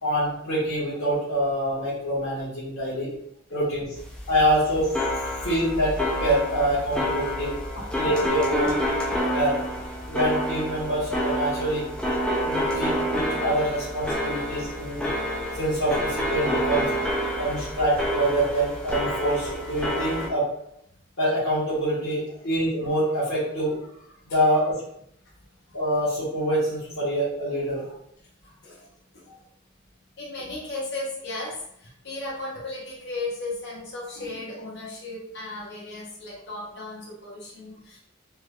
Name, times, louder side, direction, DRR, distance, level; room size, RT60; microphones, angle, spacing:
voice 1, 0.0-3.1 3.5-3.9 4.3-5.9 6.2-7.5 8.0-8.8 9.3-9.5 10.1-11.8 12.4-15.1 15.5-16.8 17.4-20.4 21.2-23.8 24.3-24.8 25.7-27.9, right 1 dB, 75° left, -10 dB, 1.3 m, -25 dB
sound 1, 3.9-20.3, equal, 5° left, 0.3 m, -28 dB
voice 2, 30.2-38.0, left 2 dB, 50° left, -4 dB, 0.8 m, -35 dB
3.3 x 2.9 x 2.2 m, 0.73 s
head